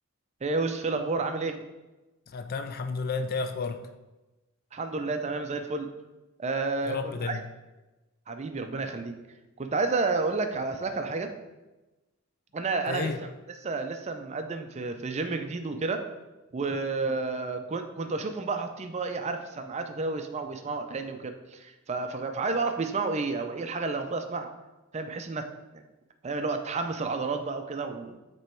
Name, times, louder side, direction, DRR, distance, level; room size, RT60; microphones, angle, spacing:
voice 1, 0.4-1.6 4.7-5.9 6.4-7.4 8.3-9.1 9.6-11.3 12.5-13.3 13.6-16.0 16.5-24.5 24.9-25.8 26.2-28.2, right 3 dB, 30° right, 6 dB, 0.4 m, -31 dB
voice 2, 2.3-3.8 6.8-7.5 12.9-13.2, left 4 dB, 45° left, 9 dB, 0.4 m, -32 dB
7.7 x 3.0 x 4.4 m, 1.1 s
head